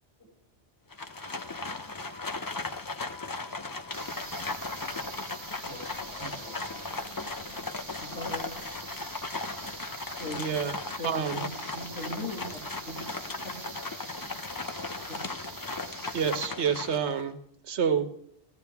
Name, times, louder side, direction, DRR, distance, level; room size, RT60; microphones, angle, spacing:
Livestock farm animals working animals, 0.9-17.3, left 3 dB, 25° left, 0.5 m, -37 dB
sound 1, 1.1-7.3 10.5-10.6, left 3 dB, 30° right, 1.5 m, -52 dB
sound 2, 3.9-16.5, right 5 dB, 45° right, 1.1 m, -45 dB
voice 1, 5.6-8.7, left 1 dB, 10° left, -7 dB, 6.5 m, -51 dB
voice 2, 8.0-8.4 9.6-9.7 10.1-10.5 11.0-12.6 12.9-13.0, left 1 dB, 80° left, -1 dB, 2.4 m, -39 dB
voice 3, 10.4-10.8 11.0-11.4 16.1-17.4 17.6-18.1, right 7 dB, 70° right, 8 dB, 1.3 m, -28 dB
15.0 x 14.5 x 3.5 m, 0.69 s
omnidirectional pair, 1.2 m